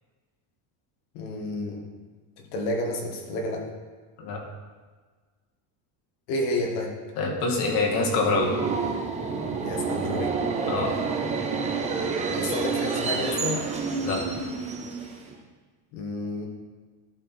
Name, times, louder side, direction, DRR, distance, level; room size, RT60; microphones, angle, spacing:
voice 1, 1.1-1.9 2.4-3.7 6.3-7.0 9.6-10.4 12.3-13.7 15.9-16.5, left 1 dB, 70° left, 1 dB, 1.9 m, -30 dB
voice 2, 7.2-8.5 10.7-10.9 14.0-14.2, left 3 dB, 85° left, 0 dB, 2.0 m, -25 dB
Subway metro underground, 7.6-15.4, right 5 dB, 15° right, 0.5 m, -29 dB
12.0 x 4.6 x 4.2 m, 1.4 s
cardioid pair, 160°, 50 cm